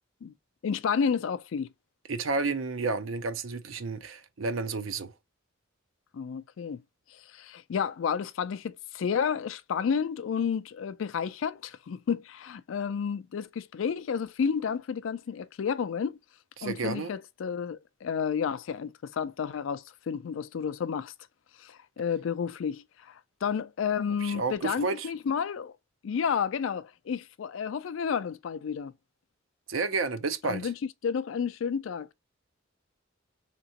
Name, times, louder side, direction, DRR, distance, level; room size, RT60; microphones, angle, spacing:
voice 1, 0.6-1.7 6.1-6.8 7.3-16.2 16.6-21.1 21.6-25.7 26.0-28.9 30.4-30.7 31.0-32.1, left 6 dB, 70° left, 0.4 m, -31 dB
voice 2, 2.1-5.1 16.6-17.1 24.2-25.1 29.7-30.7, right 4 dB, 80° right, 0.6 m, -31 dB
3.6 x 3.0 x 2.8 m
head